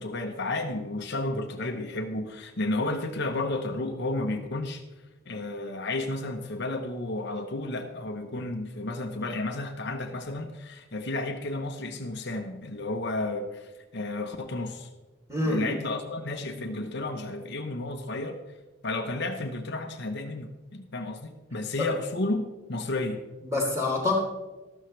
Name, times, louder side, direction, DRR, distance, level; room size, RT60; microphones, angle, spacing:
voice 1, 0.0-4.8 5.3-14.9 15.5-18.4 18.8-23.2, left 2 dB, 50° left, 5 dB, 0.9 m, -32 dB
voice 2, 15.3-15.7 21.8-21.9 23.4-24.2, left 2 dB, 15° right, -2 dB, 3.5 m, -26 dB
13.5 x 12.5 x 3.3 m, 1.2 s
head